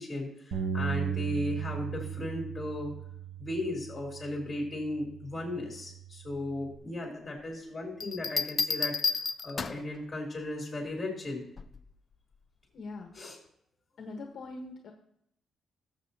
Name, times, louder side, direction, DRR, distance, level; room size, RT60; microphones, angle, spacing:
voice 1, 0.0-2.9 3.4-11.4 13.1-13.4, left 1 dB, 15° left, -1 dB, 3.5 m, -36 dB
Bass guitar, 0.5-6.8, right 8 dB, 75° right, 1.3 m, -37 dB
Bell, 8.0-10.0 11.6-11.9, left 5 dB, 35° left, 0.4 m, -31 dB
voice 2, 12.7-13.1 14.0-14.9, left 3 dB, 50° left, 2 dB, 1.1 m, -42 dB
18.5 x 7.2 x 2.8 m, 0.73 s
cardioid pair, 155°, 0 cm